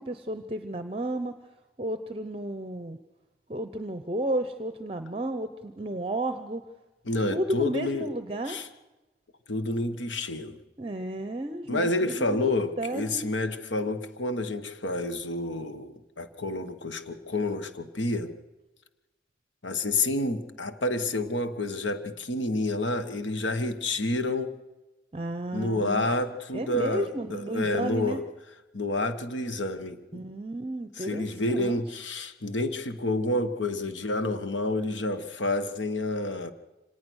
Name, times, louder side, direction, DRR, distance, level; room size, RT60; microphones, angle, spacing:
voice 1, 0.0-1.3 1.8-3.0 3.5-6.6 7.3-8.6 10.8-12.4 12.8-13.2 25.1-26.1 26.5-28.2 30.1-31.8, right 1 dB, 30° right, 9 dB, 0.7 m, -32 dB
voice 2, 7.1-8.1 8.5-8.7 9.5-10.6 11.7-18.3 19.6-24.6 25.5-28.2 28.7-30.2 31.0-36.5, left 2 dB, 85° left, 9 dB, 1.4 m, -29 dB
25.0 x 18.5 x 6.4 m, 1.1 s
head